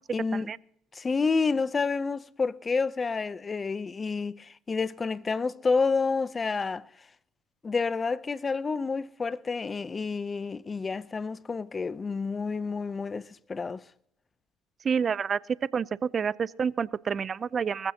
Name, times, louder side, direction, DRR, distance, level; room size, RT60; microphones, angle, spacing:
voice 1, 0.1-0.5 0.9-6.9 7.6-13.8, left 4 dB, 30° left, 0.6 m, -29 dB
voice 2, 14.8-15.4 15.7-17.9, right 6 dB, 40° right, 0.5 m, -28 dB
20.0 x 15.0 x 2.9 m
supercardioid pair, 80°, 0 cm